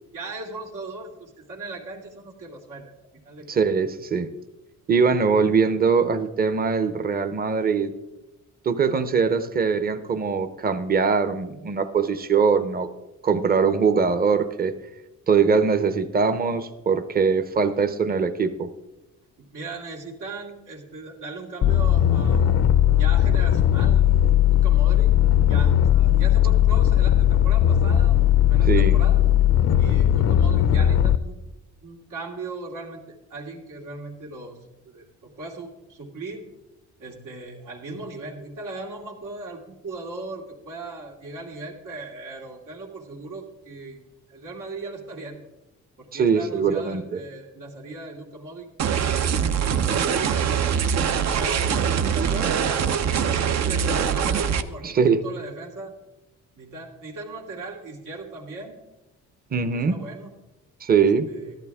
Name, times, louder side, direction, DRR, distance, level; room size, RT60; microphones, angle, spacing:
voice 1, 0.1-2.9 3.2-3.6 19.4-22.7 23.0-24.1 24.5-25.2 25.5-28.2 28.5-29.3 29.8-31.3 31.8-34.6 34.8-36.5 37.0-44.0 44.3-45.4 46.0-50.6 51.4-54.9 55.2-55.9 56.5-58.8 59.7-60.3 61.0-61.6, right 3 dB, 85° right, 0 dB, 2.7 m, -38 dB
voice 2, 3.5-4.3 4.9-7.9 8.6-12.9 13.2-14.7 15.3-18.7 28.7-29.0 46.1-47.2 54.8-55.2 59.5-60.0 60.8-61.3, right 5 dB, 30° right, 10 dB, 0.9 m, -22 dB
sound 1, 21.6-31.2, left 11 dB, 55° left, 0.6 m, -18 dB
sound 2, 48.8-54.6, right 7 dB, 60° right, 0.8 m, -23 dB
13.5 x 11.5 x 3.6 m, 1.0 s
cardioid pair, 90°, 30 cm